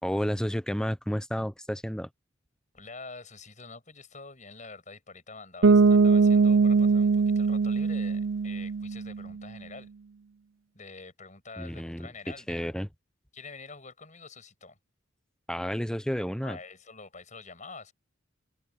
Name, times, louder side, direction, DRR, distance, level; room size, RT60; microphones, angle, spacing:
voice 1, 0.0-2.1 11.6-12.1 12.5-12.9 15.5-16.6, equal, 5° left, 0.8 m, -31 dB
voice 2, 2.7-9.9 10.7-12.8 13.3-14.8 16.4-17.9, left 4 dB, 40° left, 7.7 m, -46 dB
Bass guitar, 5.6-9.3, right 4 dB, 75° right, 0.7 m, -21 dB
open air
head